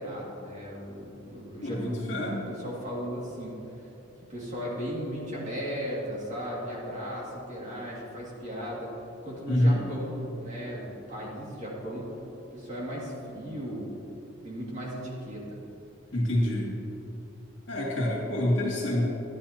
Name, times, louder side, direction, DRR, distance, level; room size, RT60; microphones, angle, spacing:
voice 1, 0.0-3.6 4.3-8.9 9.2-12.2 12.5-14.0 14.4-15.6, equal, 35° right, -5 dB, 2.3 m, -36 dB
voice 2, 1.6-2.4 9.5-9.8 16.1-16.7 17.7-19.0, left 1 dB, 65° left, -4 dB, 2.5 m, -26 dB
12.0 x 11.0 x 2.9 m, 3.0 s
head